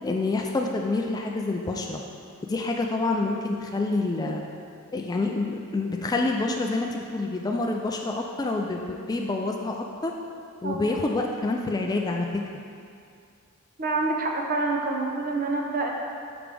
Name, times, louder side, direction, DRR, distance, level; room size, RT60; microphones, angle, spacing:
voice 1, 0.0-2.0 2.5-4.4 4.9-10.1 10.6-12.3, left 2 dB, 20° left, 1 dB, 0.3 m, -27 dB
voice 2, 13.8-15.9, right 3 dB, 40° right, 1 dB, 0.7 m, -27 dB
6.9 x 6.0 x 3.4 m, 2.4 s
head